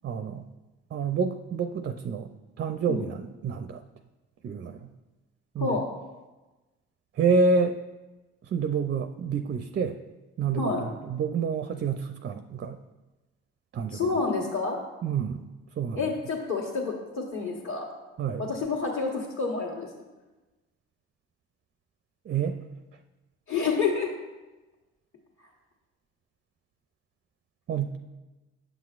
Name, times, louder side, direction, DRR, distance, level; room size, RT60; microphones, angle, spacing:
voice 1, 0.0-0.5 0.9-2.3 2.6-3.8 4.4-4.9 5.5-5.8 7.2-7.8 8.4-10.0 10.4-12.8 13.7-14.0 15.0-15.4 15.8-16.0 18.2-18.4 22.3-22.6 27.7-28.0, right 5 dB, 35° right, 8 dB, 0.4 m, -28 dB
voice 2, 13.9-14.8 15.9-17.9 18.4-20.0 23.5-24.1, left 4 dB, 40° left, -5 dB, 1.4 m, -29 dB
9.0 x 6.0 x 2.4 m, 1.1 s
supercardioid pair, 60°, 32 cm